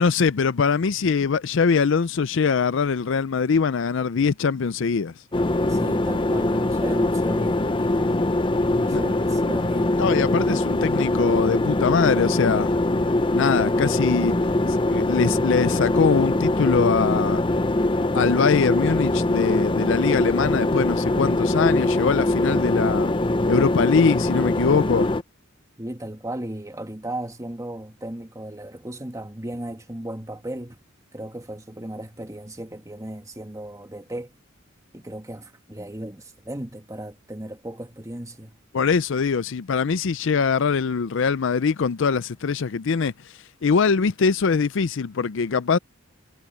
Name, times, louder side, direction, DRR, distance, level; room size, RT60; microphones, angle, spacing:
voice 1, 0.0-5.1 8.9-9.0 10.0-12.7 13.3-14.3 14.7-17.4 18.1-23.1 23.5-25.1 38.7-43.1 43.6-45.8, left 5 dB, 65° left, 0.5 m, -22 dB
sound 1, 5.3-25.2, left 2 dB, 25° left, 0.7 m, -22 dB
voice 2, 5.7-8.2 8.7-10.0 25.8-30.8 31.1-34.3 34.9-38.6, right 1 dB, 15° right, 1.6 m, -35 dB
head